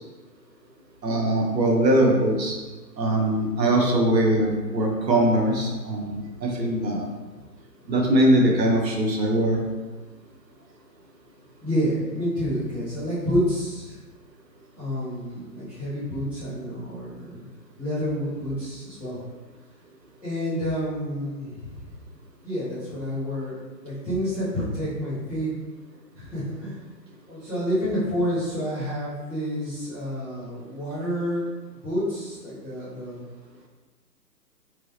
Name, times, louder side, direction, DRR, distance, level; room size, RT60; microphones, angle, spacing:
voice 1, 1.0-2.5 3.0-7.1 7.9-9.6, right 1 dB, 85° right, 0 dB, 1.3 m, -21 dB
voice 2, 11.6-14.0 14.7-17.5 17.8-19.2 20.2-21.9 22.4-23.6 23.8-25.5 26.1-26.8 27.3-31.4 31.8-33.2, equal, ahead, -17 dB, 1.0 m, -29 dB
3.9 x 3.6 x 3.3 m, 1.3 s
hypercardioid pair, 155°, 50 cm